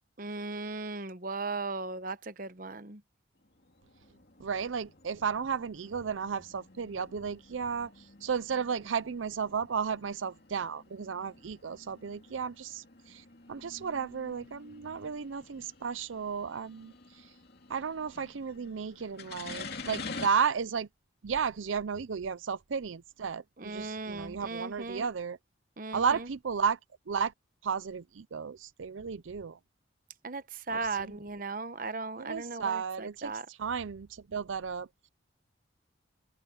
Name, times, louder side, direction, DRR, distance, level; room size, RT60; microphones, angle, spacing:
voice 1, 0.2-3.0 23.6-25.1 25.8-26.3 30.2-33.5, right 3 dB, 45° right, 1.0 m, -37 dB
sound 1, 3.4-20.3, left 4 dB, 55° left, 2.9 m, -48 dB
voice 2, 4.4-7.9 8.2-13.2 13.5-16.9 17.7-20.9 21.2-25.4 25.9-26.8 27.1-27.3 27.6-29.6 30.7-31.1 32.2-33.3 33.6-34.9, right 6 dB, 80° right, 0.6 m, -33 dB
head